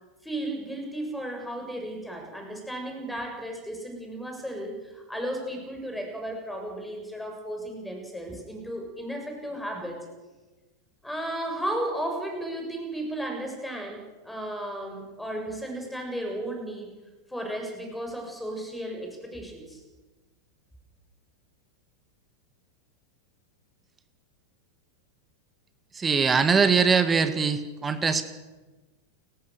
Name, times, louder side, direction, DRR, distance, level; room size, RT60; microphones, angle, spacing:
voice 1, 0.2-10.0 11.0-16.9 17.3-19.8, right 1 dB, 5° left, 3 dB, 7.1 m, -34 dB
voice 2, 25.9-28.3, right 5 dB, 15° right, 11 dB, 1.8 m, -22 dB
29.5 x 16.0 x 6.9 m, 1.2 s
figure-of-eight pair, 90°, 0 cm